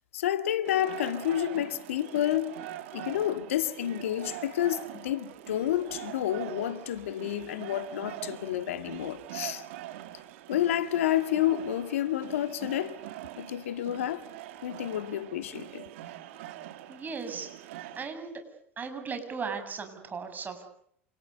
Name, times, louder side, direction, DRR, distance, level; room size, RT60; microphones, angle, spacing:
voice 1, 0.1-2.6 2.9-9.6 10.5-13.0 13.4-14.3 14.6-15.9, left 12 dB, 75° left, 2.0 m, -30 dB
sound 1, 0.6-18.1, right 13 dB, 65° right, 2.6 m, -43 dB
voice 2, 16.9-17.5 18.0-18.4 18.8-20.6, right 5 dB, 25° right, 7.5 m, -37 dB
29.0 x 28.5 x 6.8 m
hypercardioid pair, 85°, 7 cm